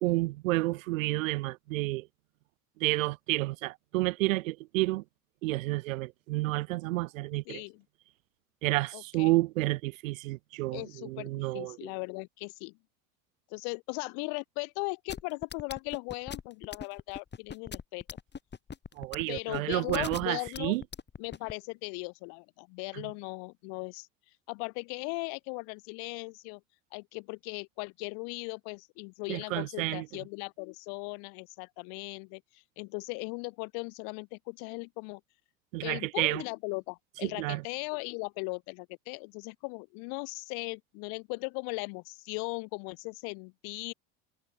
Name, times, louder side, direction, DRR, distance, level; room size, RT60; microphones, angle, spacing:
voice 1, 0.0-2.1 2.8-5.0 5.4-7.6 8.6-11.9 19.0-20.8 22.9-23.0 29.3-30.1 35.7-36.4 37.2-37.6, right 20 dB, 85° right, 0.8 m, -30 dB
voice 2, 7.5-7.8 8.9-9.4 10.7-12.8 13.5-18.0 19.3-20.8 21.2-24.1 24.5-26.6 26.9-35.2 35.8-43.9, left 38 dB, 70° left, 5.4 m, -38 dB
sound 1, 15.1-21.5, left 6 dB, 25° left, 3.5 m, -40 dB
supercardioid pair, 90°, 38 cm